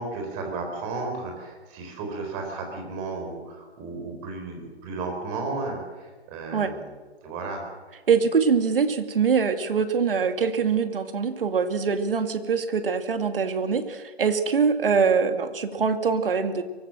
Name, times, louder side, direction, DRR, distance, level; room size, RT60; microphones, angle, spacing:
voice 1, 0.0-6.9 7.2-7.6, right 3 dB, 20° right, 3 dB, 4.5 m, -34 dB
voice 2, 8.1-16.7, right 5 dB, 60° right, 8 dB, 2.4 m, -23 dB
23.5 x 18.0 x 7.8 m, 1.4 s
hypercardioid pair, 155°, 32 cm